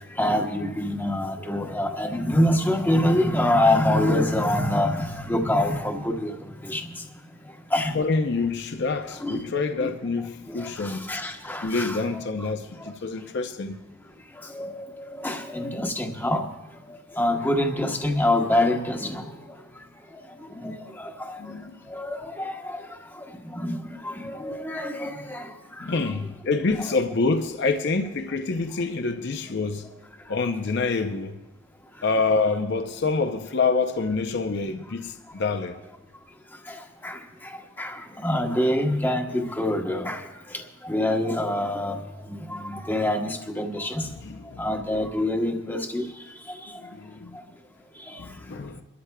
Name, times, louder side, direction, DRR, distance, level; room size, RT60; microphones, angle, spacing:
voice 1, 0.2-6.3 6.7-6.8 7.7-7.9 9.2-9.4 9.8-9.9 10.5-12.0 14.5-14.8 15.2-16.5 17.2-19.3 20.6-21.4 21.9-22.8 23.5-23.8 24.0-25.5 26.9-27.0 37.0-37.2 37.8-40.2 40.8-42.0 42.5-44.0 44.6-46.0 48.1-48.2, left 1 dB, 10° left, 0.9 m, -25 dB
voice 2, 7.9-11.1 11.6-13.8 21.4-21.8 25.8-29.9 30.3-31.4 32.0-35.8 44.0-44.7 46.8-47.4 48.2-48.8, left 4 dB, 55° left, 0.6 m, -27 dB
29.0 x 13.0 x 2.2 m
head